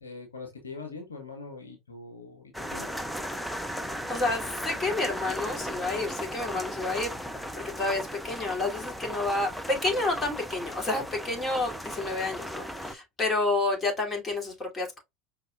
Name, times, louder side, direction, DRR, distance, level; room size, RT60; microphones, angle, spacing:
voice 1, 0.0-2.9, left 4 dB, 85° left, 1.1 m, -42 dB
sound 1, 2.5-12.9, equal, ahead, 0.7 m, -36 dB
voice 2, 4.1-7.1 7.8-15.0, left 2 dB, 25° left, 2.7 m, -29 dB
5.3 x 4.2 x 2.3 m
figure-of-eight pair, 75°, 0 cm